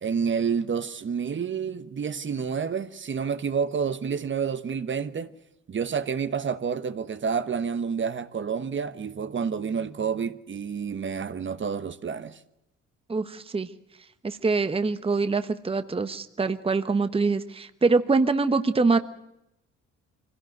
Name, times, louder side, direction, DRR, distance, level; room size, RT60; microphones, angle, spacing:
voice 1, 0.0-5.3 5.7-12.4, right 6 dB, 40° right, 1.1 m, -29 dB
voice 2, 13.1-13.7 14.2-19.0, right 4 dB, 20° right, 1.0 m, -24 dB
24.0 x 17.0 x 7.9 m
cardioid pair, 90°, 30 cm